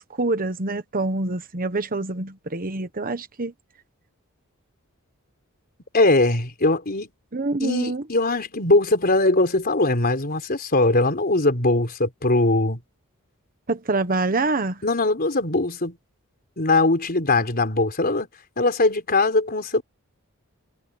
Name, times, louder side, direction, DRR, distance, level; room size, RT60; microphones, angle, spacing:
voice 1, 0.0-3.5 7.3-8.0 13.7-14.8, right 2 dB, 40° right, 1.2 m, -26 dB
voice 2, 5.9-7.1 7.6-12.8 14.8-16.0 16.6-18.3 18.6-19.8, left 2 dB, 45° left, 4.2 m, -21 dB
head